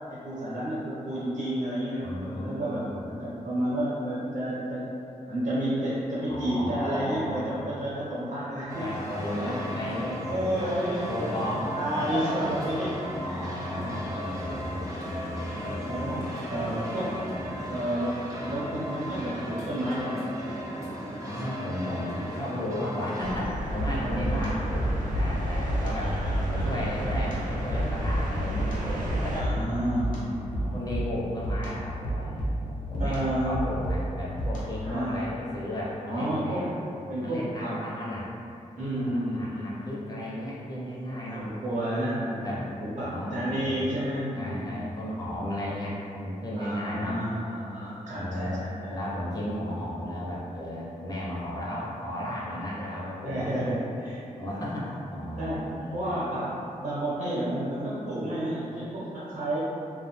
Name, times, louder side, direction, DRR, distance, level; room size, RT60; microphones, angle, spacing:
voice 1, 0.1-4.9 5.3-8.9 9.3-9.8 10.3-11.4 11.7-14.1 15.8-17.1 17.7-20.3 23.8-24.5 25.9-27.2 29.3-31.0 33.0-33.6 34.8-35.3 36.1-36.7 37.1-37.8 38.8-39.8 41.1-45.0 46.5-49.0 53.2-54.7 55.4-55.7 55.9-59.6, right 1 dB, 65° right, -8 dB, 0.8 m, -31 dB
voice 2, 2.0-3.1 6.3-7.6 8.8-10.8 11.1-12.4 13.2-16.8 21.3-26.2 26.5-29.6 30.6-36.7 37.2-38.3 38.8-41.5 42.4-42.7 43.0-43.9 44.3-47.2 48.1-53.6 54.4-56.1, left 1 dB, 30° left, -6 dB, 0.4 m, -35 dB
sound 1, 8.7-23.4, equal, 20° right, 0.5 m, -36 dB
sound 2, 23.2-29.4, right 1 dB, 85° right, 0.4 m, -32 dB
sound 3, 23.8-34.9, right 1 dB, 90° left, 0.6 m, -32 dB
2.4 x 2.0 x 2.9 m, 2.6 s
wide cardioid pair, 160°, 13 cm